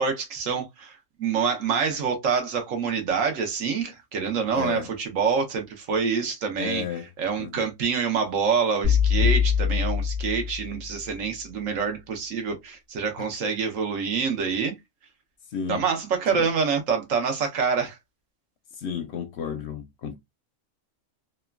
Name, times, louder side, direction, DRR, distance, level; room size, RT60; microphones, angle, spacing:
voice 1, 0.0-6.8 7.2-14.8 15.7-18.0, right 6 dB, 75° right, 1.1 m, -26 dB
voice 2, 4.5-4.9 6.6-7.1 7.4-7.7 13.2-13.3 15.5-15.8 16.3-16.5 18.8-20.2, left 7 dB, 65° left, 0.7 m, -33 dB
sound 1, 8.8-10.9, left 7 dB, 35° right, 1.0 m, -23 dB
2.9 x 2.2 x 2.2 m
omnidirectional pair, 1.4 m